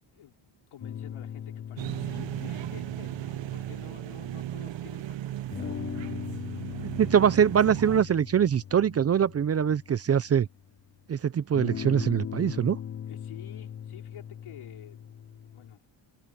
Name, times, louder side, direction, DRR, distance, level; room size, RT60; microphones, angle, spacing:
voice 1, 0.1-5.7 6.5-7.4 13.1-15.0 15.5-15.8, left 11 dB, 85° left, 4.6 m, -50 dB
sound 1, 0.8-4.7 5.5-10.6 11.5-15.7, left 9 dB, 30° left, 0.6 m, -40 dB
sound 2, 1.8-8.0, right 13 dB, 65° right, 0.9 m, -36 dB
voice 2, 7.0-10.5 11.1-12.8, right 8 dB, 35° right, 0.5 m, -23 dB
wide cardioid pair, 160°, 48 cm